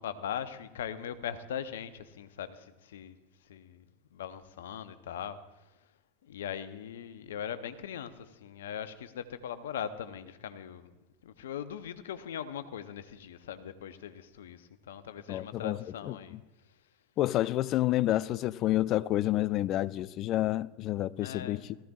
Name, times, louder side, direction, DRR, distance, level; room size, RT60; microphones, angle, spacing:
voice 1, 0.0-3.2 3.5-3.8 4.1-5.4 6.2-10.9 11.2-16.4 21.2-21.6, left 9 dB, 70° left, 0.7 m, -40 dB
voice 2, 15.3-16.4 17.2-21.8, left 15 dB, 45° left, 0.3 m, -29 dB
18.5 x 14.0 x 2.4 m
figure-of-eight pair, 80°, 0 cm